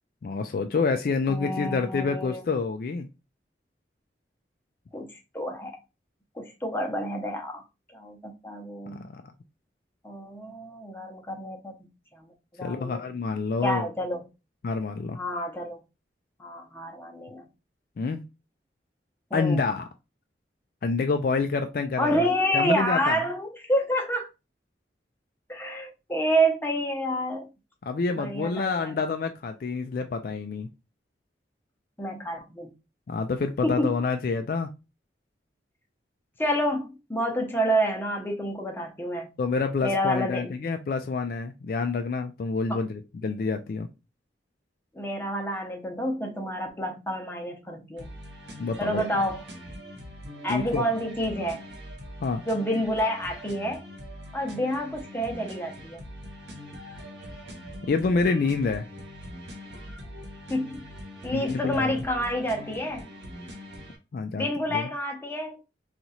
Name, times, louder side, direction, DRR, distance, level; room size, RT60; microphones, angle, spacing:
voice 1, 0.2-3.1 9.1-9.2 12.6-13.9 14.6-15.2 18.0-18.2 19.3-19.8 20.8-22.3 22.5-23.2 27.8-30.7 33.1-34.7 39.4-43.9 48.6-49.0 50.5-50.9 52.2-52.4 57.9-58.8 61.3-61.9 64.1-64.9, left 4 dB, 50° left, 0.3 m, -27 dB
voice 2, 1.3-2.4 4.9-5.1 5.3-5.7 6.3-7.6 7.9-9.1 10.0-11.9 12.2-12.3 12.6-13.1 13.6-14.3 15.2-15.8 16.4-17.5 19.3-19.6 22.0-24.3 25.5-27.5 28.2-29.0 32.0-32.7 33.6-34.0 36.4-39.3 39.8-40.6 42.7-42.8 44.9-48.1 48.8-49.4 50.4-51.6 52.5-53.8 54.3-56.0 60.5-60.9 61.2-63.1 64.4-65.6, equal, 10° left, 0.7 m, -28 dB
sound 1, 48.0-64.0, equal, 75° right, 1.0 m, -42 dB
2.9 x 2.4 x 4.1 m
head